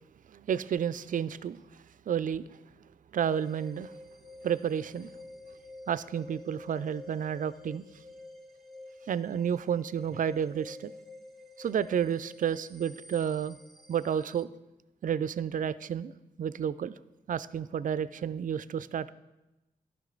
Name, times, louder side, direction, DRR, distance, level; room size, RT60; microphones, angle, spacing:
voice 1, 0.3-1.6 2.1-2.4 3.1-3.9 4.4-5.1 5.9-7.8 9.1-10.9 11.6-13.6 13.9-14.5 15.0-16.1 16.4-16.9 17.3-19.1, right 8 dB, 50° right, 17 dB, 0.4 m, -31 dB
sound 1, 3.2-14.4, left 2 dB, ahead, 0.9 m, -50 dB
11.0 x 5.0 x 3.9 m, 1.0 s
cardioid pair, 50°, 17 cm